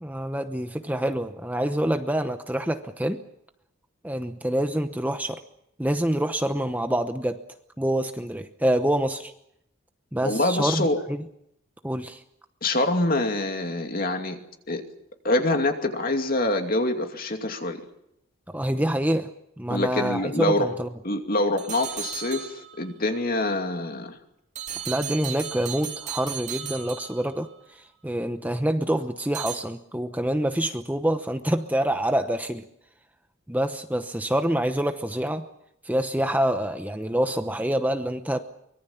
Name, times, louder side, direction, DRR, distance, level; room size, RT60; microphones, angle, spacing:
voice 1, 0.0-3.2 4.0-5.4 5.8-7.4 7.8-9.3 10.1-11.2 11.8-12.2 18.5-19.3 19.6-20.9 24.9-32.6 33.5-35.5 35.8-38.4, right 1 dB, 10° right, 7 dB, 0.9 m, -26 dB
voice 2, 10.2-11.0 12.6-14.4 14.7-14.8 15.2-17.8 19.7-20.7 21.0-24.2, left 2 dB, 45° left, 5 dB, 2.6 m, -25 dB
Hand Clock, 21.6-22.9 24.6-27.5 29.3-29.6, right 9 dB, 35° right, 2.9 m, -35 dB
24.5 x 22.0 x 7.3 m, 0.77 s
head